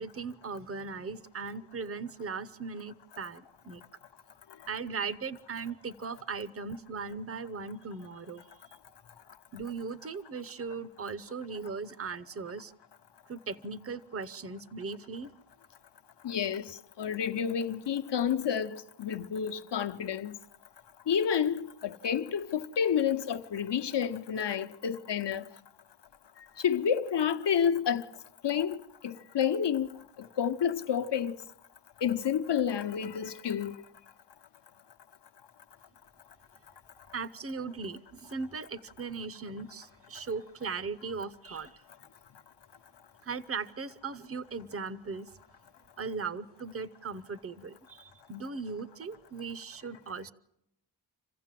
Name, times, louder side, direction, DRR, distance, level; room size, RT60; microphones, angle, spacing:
voice 1, 0.0-3.8 4.7-8.8 9.5-12.7 13.3-15.3 37.1-41.8 43.2-45.3 46.0-50.3, right 4 dB, 30° right, 0.7 m, -38 dB
voice 2, 16.2-20.4 21.1-25.5 26.6-28.1 28.4-29.9 30.2-31.4 32.0-33.8, left 8 dB, 60° left, 0.9 m, -30 dB
27.5 x 15.5 x 7.5 m
wide cardioid pair, 125°, 47 cm